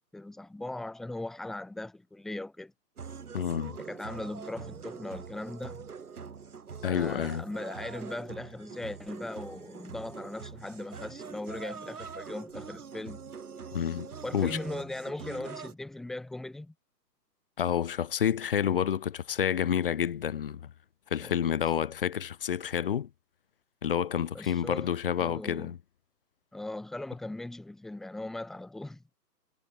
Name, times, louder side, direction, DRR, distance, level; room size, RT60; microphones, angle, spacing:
voice 1, 0.0-2.7 3.8-5.8 6.8-13.2 14.2-16.7 21.2-21.3 24.3-24.9 25.2-25.7 26.5-29.0, left 2 dB, ahead, 1.7 m, -39 dB
sound 1, 3.0-15.7, right 6 dB, 60° right, 7.3 m, -44 dB
voice 2, 3.3-3.8 6.8-7.4 13.7-14.1 14.3-14.6 17.6-20.7 21.1-23.1 23.8-25.8, left 9 dB, 35° left, 3.0 m, -29 dB
hypercardioid pair, 170°, 50 cm